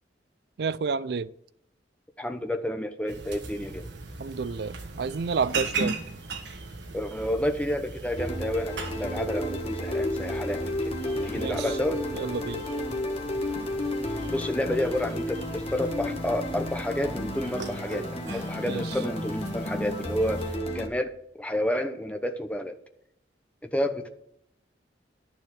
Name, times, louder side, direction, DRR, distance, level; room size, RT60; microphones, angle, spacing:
voice 1, 0.6-1.3 4.2-6.0 11.4-11.7 12.1-12.6 18.6-18.9, right 5 dB, 60° right, 17 dB, 0.4 m, -30 dB
voice 2, 2.2-3.9 6.9-10.6 11.2-12.1 14.3-20.5 20.7-22.8 23.6-24.1, left 1 dB, 10° left, 6 dB, 0.9 m, -30 dB
sound 1, 3.1-20.6, right 3 dB, 80° right, 1.7 m, -39 dB
sound 2, 8.2-20.9, left 1 dB, 35° left, 1.4 m, -32 dB
11.5 x 7.0 x 6.3 m, 0.73 s
head